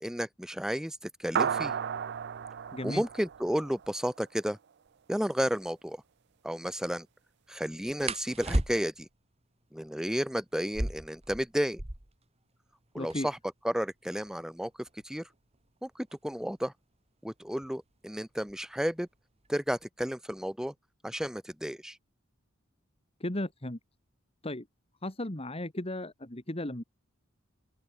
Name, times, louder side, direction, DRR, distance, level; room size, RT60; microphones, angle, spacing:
voice 1, 0.0-1.7 2.8-4.6 5.1-6.0 6.4-7.1 7.5-9.1 9.7-11.8 12.9-13.4 13.6-15.3 15.8-16.7 17.2-19.1 19.5-20.7 21.0-22.0, equal, 5° right, 0.8 m, -32 dB
sound 1, 1.4-4.1, right 7 dB, 55° right, 0.5 m, -33 dB
voice 2, 2.7-3.0 13.0-13.3 23.2-23.8 24.4-24.7 25.0-26.8, left 1 dB, 30° left, 2.1 m, -35 dB
sound 2, 4.9-5.0 5.3-5.6 8.0-9.1 10.6-12.2 12.5-12.6 12.8-13.4 14.1-16.6 17.6-17.9 18.3-18.8 19.1-19.9, right 1 dB, 30° right, 2.0 m, -35 dB
open air
head